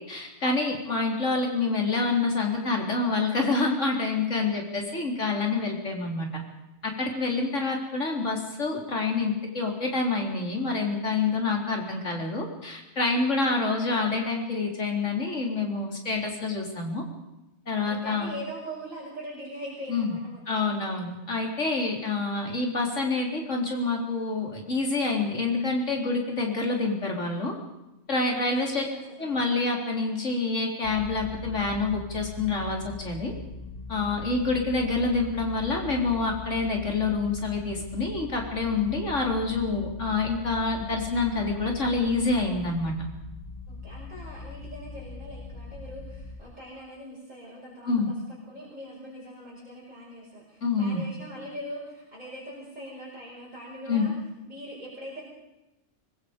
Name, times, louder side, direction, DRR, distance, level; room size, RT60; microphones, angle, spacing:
voice 1, 0.0-6.4 6.8-17.0 17.7-18.3 19.9-20.2 20.5-27.5 28.1-28.8 29.2-33.3 33.9-43.0 47.8-48.1 50.6-51.0 53.9-54.1, left 3 dB, 85° left, 1 dB, 4.1 m, -27 dB
voice 2, 0.6-1.1 4.3-4.9 7.4-7.6 17.9-21.0 21.7-21.9 28.3-29.2 43.7-48.2 48.5-54.1 54.4-55.2, equal, 35° right, -6 dB, 6.0 m, -42 dB
sound 1, 30.8-46.4, left 4 dB, 35° left, 3.7 m, -41 dB
24.5 x 22.0 x 5.3 m, 0.97 s
omnidirectional pair, 1.2 m